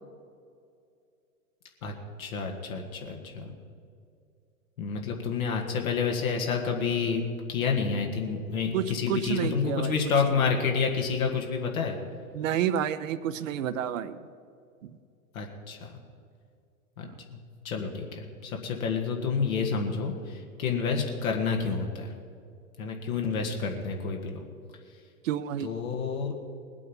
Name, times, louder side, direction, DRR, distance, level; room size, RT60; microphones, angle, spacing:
voice 1, 2.2-3.5 4.8-7.2 7.5-12.0 15.3-16.0 17.0-17.1 17.3-17.4 17.6-22.1 22.8-24.4 25.6-26.3, left 5 dB, 65° left, 2 dB, 2.0 m, -29 dB
voice 2, 8.7-9.9 10.3-10.4 12.3-14.2 14.8-14.9 17.0-17.1 25.2-25.7, right 10 dB, 60° right, 12 dB, 0.8 m, -30 dB
19.5 x 8.5 x 5.4 m, 2.4 s
hypercardioid pair, 105°, 45 cm